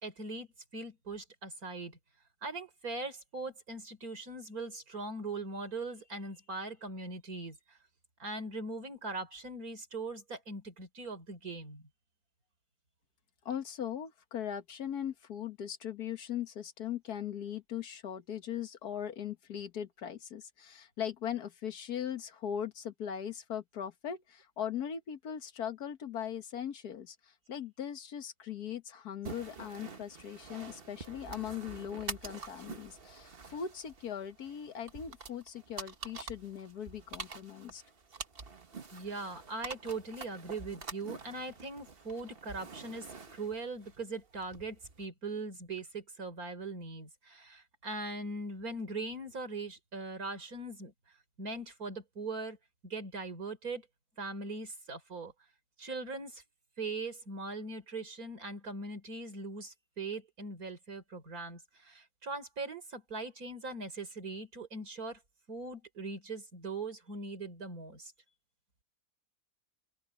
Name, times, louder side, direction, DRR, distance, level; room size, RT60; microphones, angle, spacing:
voice 1, 0.0-0.5 0.7-2.0 2.4-7.8 8.2-11.9 38.9-50.9 51.4-52.6 52.8-53.9 54.2-55.3 55.8-56.4 56.8-65.2 65.5-68.1, right 3 dB, 70° right, 4.4 m, -40 dB
voice 2, 13.5-37.8, left 9 dB, 85° left, 1.8 m, -39 dB
sound 1, 29.2-45.0, right 4 dB, 40° right, 1.5 m, -47 dB
open air
omnidirectional pair, 1.6 m